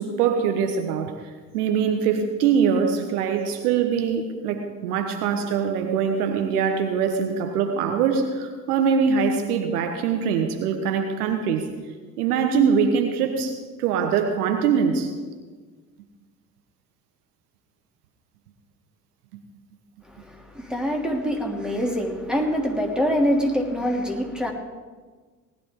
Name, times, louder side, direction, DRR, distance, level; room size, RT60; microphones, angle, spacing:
voice 1, 0.0-11.7 12.2-15.1, right 6 dB, 70° right, 5 dB, 1.5 m, -23 dB
voice 2, 20.1-24.5, equal, ahead, 0 dB, 3.0 m, -25 dB
19.0 x 12.0 x 3.8 m, 1.4 s
figure-of-eight pair, 60°, 47 cm